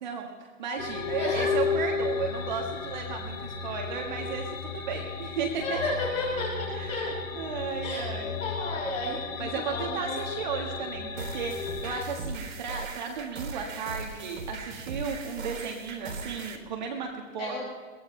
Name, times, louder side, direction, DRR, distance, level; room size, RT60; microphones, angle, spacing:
voice 1, 0.0-5.8 6.7-7.1 7.3-8.4 9.4-17.6, right 5 dB, 35° right, 1 dB, 1.7 m, -34 dB
sound 1, 0.8-12.0, left 5 dB, 85° left, 2.5 m, -34 dB
voice 2, 5.6-7.1 7.8-10.2 17.4-17.6, left 2 dB, 15° left, -4 dB, 5.5 m, -33 dB
sound 2, 11.2-16.6, right 4 dB, 85° right, 3.6 m, -39 dB
22.5 x 18.5 x 3.3 m, 1.5 s
hypercardioid pair, 170°, 39 cm